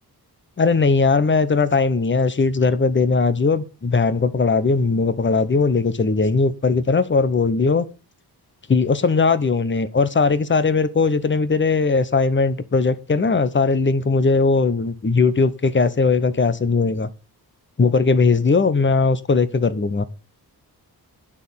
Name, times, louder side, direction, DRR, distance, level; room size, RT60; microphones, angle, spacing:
voice 1, 0.6-7.9 8.7-17.1 17.8-20.0, left 4 dB, 30° left, 0.9 m, -19 dB
9.9 x 6.4 x 7.0 m
wide cardioid pair, 165°, 39 cm